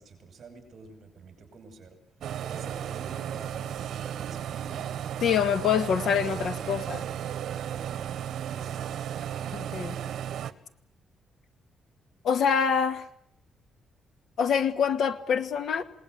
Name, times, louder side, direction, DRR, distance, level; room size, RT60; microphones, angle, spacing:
voice 1, 0.0-2.0 2.4-5.4 8.5-9.1 9.6-10.2, right 4 dB, 45° right, 6 dB, 6.4 m, -48 dB
sound 1, 2.2-10.5, right 10 dB, 70° right, 1.5 m, -34 dB
voice 2, 5.2-7.1 9.5-9.9 12.2-13.1 14.4-15.8, left 7 dB, 65° left, 9 dB, 2.1 m, -25 dB
28.0 x 19.5 x 8.1 m, 0.77 s
cardioid pair, 150°, 0 cm